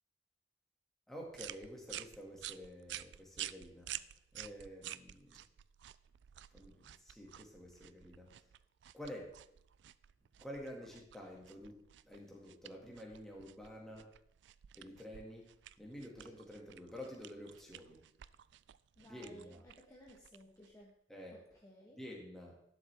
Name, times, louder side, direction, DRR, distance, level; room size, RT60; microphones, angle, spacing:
voice 1, 1.1-3.9 4.3-5.4 6.5-8.4 8.9-9.4 10.4-14.1 14.7-15.5 15.8-18.0 19.0-19.6 21.1-21.4 22.0-22.6, equal, ahead, -2 dB, 2.1 m, -49 dB
sound 1, 1.3-20.9, right 13 dB, 70° right, 0.3 m, -51 dB
voice 2, 19.0-20.9 21.3-22.0, equal, 20° left, -3 dB, 1.3 m, -58 dB
11.5 x 7.5 x 3.6 m, 0.75 s
head